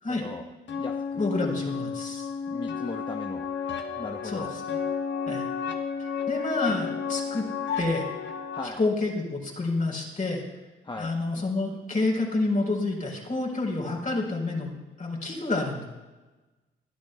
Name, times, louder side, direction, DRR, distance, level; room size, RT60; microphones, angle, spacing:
voice 1, 0.1-0.4 0.8-1.3 2.5-3.5 3.9-4.5 8.5-8.8 10.8-11.1, left 3 dB, 20° left, 3 dB, 0.8 m, -37 dB
sound 1, 0.7-8.7, left 6 dB, 60° left, 1.2 m, -32 dB
voice 2, 1.2-2.3 4.2-4.5 5.3-5.5 6.0-7.5 7.8-8.1 8.8-10.4 11.0-14.7 15.0-15.8, left 2 dB, 40° left, 0 dB, 3.9 m, -28 dB
19.5 x 12.0 x 2.2 m, 1.2 s
supercardioid pair, 65°, 21 cm